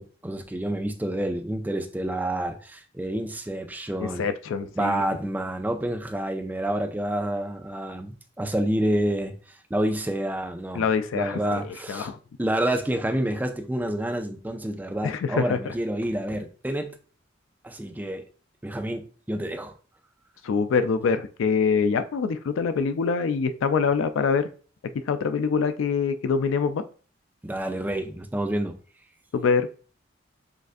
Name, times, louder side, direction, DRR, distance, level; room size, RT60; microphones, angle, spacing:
voice 1, 0.0-4.3 4.8-10.8 11.1-12.1 12.4-17.0 17.6-18.2 18.6-19.7 27.4-28.8, right 1 dB, 10° right, 5 dB, 0.4 m, -28 dB
voice 2, 4.0-5.0 10.7-12.2 15.0-15.7 20.4-24.5 25.1-26.8 29.3-29.7, left 5 dB, 85° left, 10 dB, 0.3 m, -25 dB
6.4 x 2.4 x 2.5 m, 0.39 s
head